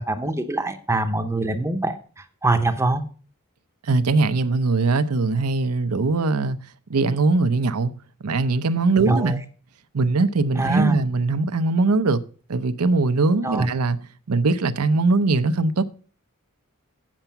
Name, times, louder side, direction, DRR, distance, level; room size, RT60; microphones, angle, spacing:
voice 1, 0.0-2.0 2.4-3.0 9.1-9.4 10.6-10.9 13.4-13.7, right 2 dB, 15° right, 0.7 m, -23 dB
voice 2, 3.9-6.6 6.9-7.9 8.2-9.4 9.9-12.2 12.5-14.0 14.3-15.9, right 3 dB, 90° right, 0.7 m, -21 dB
8.0 x 7.4 x 5.7 m
head